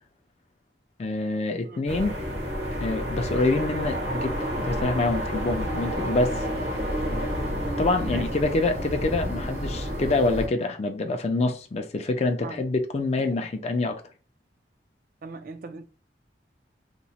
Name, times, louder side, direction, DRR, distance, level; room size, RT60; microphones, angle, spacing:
voice 1, 1.0-2.2 2.8-6.5 7.6-14.0, left 2 dB, 35° left, 0.4 m, -26 dB
sound 1, 1.9-10.5, equal, 75° right, 0.9 m, -30 dB
voice 2, 15.2-15.9, right 3 dB, 50° right, 0.4 m, -38 dB
2.9 x 2.1 x 4.0 m
head